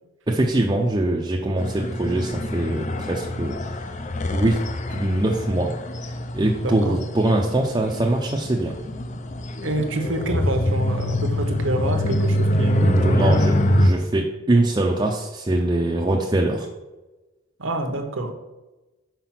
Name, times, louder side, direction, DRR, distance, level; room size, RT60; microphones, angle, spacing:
voice 1, 0.3-3.9 4.3-4.6 4.9-5.7 6.1-8.8 12.8-16.7, right 1 dB, 20° right, 0 dB, 0.5 m, -23 dB
sound 1, 1.6-13.9, left 1 dB, 35° left, 0.5 m, -25 dB
voice 2, 6.6-7.0 9.6-13.4 17.6-18.3, right 2 dB, 70° right, 5 dB, 1.0 m, -27 dB
5.9 x 4.8 x 5.9 m, 1.1 s
head